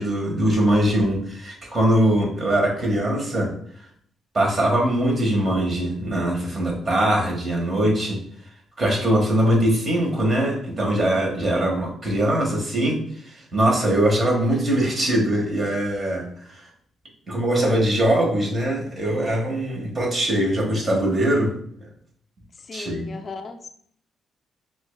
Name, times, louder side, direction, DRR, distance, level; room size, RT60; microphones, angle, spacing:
voice 1, 0.0-3.5 4.3-8.2 8.8-16.6 17.3-21.5 22.7-23.1, right 1 dB, 35° right, -1 dB, 1.5 m, -22 dB
voice 2, 22.6-23.7, left 4 dB, 40° left, 7 dB, 0.5 m, -37 dB
5.8 x 2.5 x 2.2 m, 0.64 s
cardioid pair, 90°, 0 cm